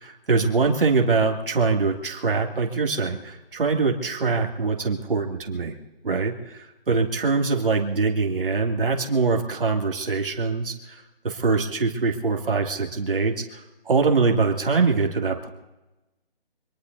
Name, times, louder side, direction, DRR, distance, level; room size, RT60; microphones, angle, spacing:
voice 1, 0.0-5.8 6.0-15.5, right 4 dB, 60° right, 2 dB, 2.5 m, -23 dB
25.5 x 20.0 x 2.7 m, 1.0 s
hypercardioid pair, 170°, 30 cm